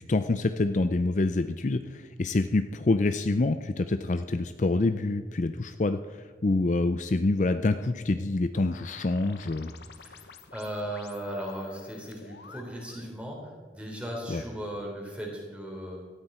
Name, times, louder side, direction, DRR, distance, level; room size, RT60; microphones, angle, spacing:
voice 1, 0.0-9.7 14.3-14.4, left 2 dB, 40° left, 9 dB, 0.5 m, -26 dB
sound 1, 8.5-13.1, left 5 dB, 60° left, 1.0 m, -50 dB
voice 2, 10.0-16.0, equal, 5° right, -1 dB, 3.5 m, -37 dB
17.5 x 13.5 x 4.4 m, 1.5 s
head